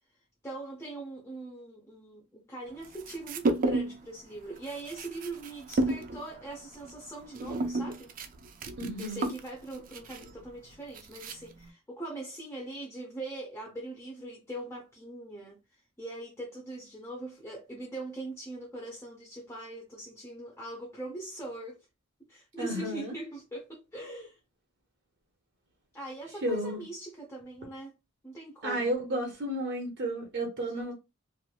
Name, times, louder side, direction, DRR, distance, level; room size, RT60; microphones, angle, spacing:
voice 1, 0.4-8.1 9.0-21.9 22.3-24.4 25.9-27.9 28.2-29.0 30.6-30.9, right 2 dB, 15° left, 0.5 m, -41 dB
sound 1, 2.8-4.1 4.4-11.7, right 2 dB, 40° right, 0.4 m, -33 dB
voice 2, 8.8-9.3 22.6-23.1 26.4-26.8 28.6-30.9, right 1 dB, 55° right, 0.7 m, -32 dB
3.0 x 2.4 x 2.3 m
head